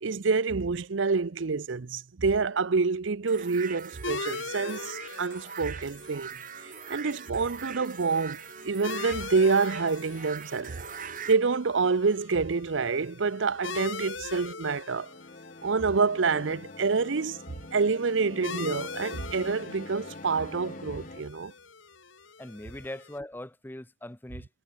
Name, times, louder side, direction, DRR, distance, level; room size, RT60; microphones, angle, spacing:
voice 1, 0.0-6.4 6.6-8.4 8.6-10.8 11.3-15.1 15.6-17.4 17.7-21.5, right 4 dB, 70° right, 0.7 m, -27 dB
sound 1, 3.3-11.4, right 7 dB, 40° right, 2.1 m, -42 dB
sound 2, 4.0-23.2, left 4 dB, 75° left, 2.8 m, -42 dB
sound 3, 14.9-21.3, left 2 dB, 40° left, 1.4 m, -45 dB
voice 2, 22.4-24.5, left 1 dB, 10° left, 0.7 m, -41 dB
head